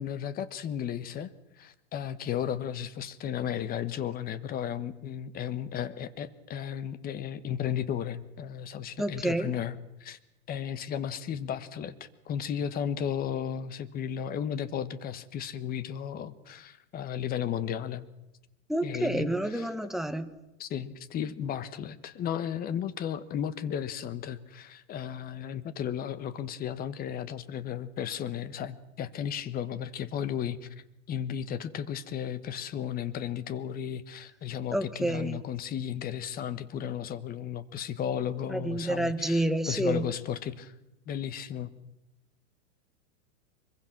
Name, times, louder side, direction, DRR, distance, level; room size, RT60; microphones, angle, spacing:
voice 1, 0.0-1.3 1.6-10.2 10.5-18.1 18.8-19.7 20.6-30.7 31.1-40.7 41.1-41.7, left 9 dB, 20° left, 1.2 m, -34 dB
voice 2, 9.0-9.5 18.7-20.3 34.7-35.4 38.5-40.1, right 1 dB, ahead, 1.0 m, -29 dB
24.5 x 22.5 x 6.0 m
supercardioid pair, 145°, 40 cm